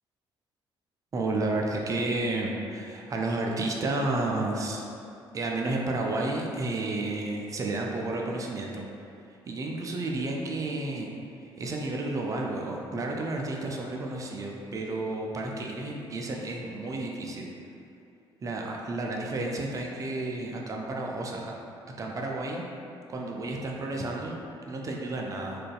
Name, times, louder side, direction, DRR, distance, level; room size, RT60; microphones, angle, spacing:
voice 1, 1.1-4.8 5.3-8.9 9.5-11.1 11.4-17.5 18.4-21.5 22.0-22.6 23.1-24.4 24.7-25.6, right 2 dB, 25° right, -1 dB, 0.4 m, -31 dB
3.8 x 2.4 x 2.2 m, 2.6 s
figure-of-eight pair, 45°, 13 cm